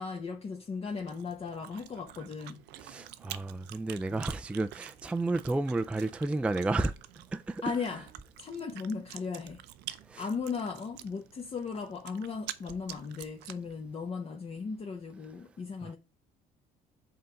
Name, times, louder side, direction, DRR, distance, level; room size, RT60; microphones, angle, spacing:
voice 1, 0.0-2.6 4.1-4.2 7.6-8.1 8.4-9.6 10.2-16.0, left 5 dB, 35° left, 1.0 m, -37 dB
Chewing mastication, 0.9-13.7, right 14 dB, 85° right, 0.6 m, -48 dB
voice 2, 2.8-6.9 7.3-7.6 10.1-10.2 15.8-15.9, right 2 dB, 5° right, 0.3 m, -31 dB
5.4 x 3.9 x 5.6 m
cardioid pair, 110°, 17 cm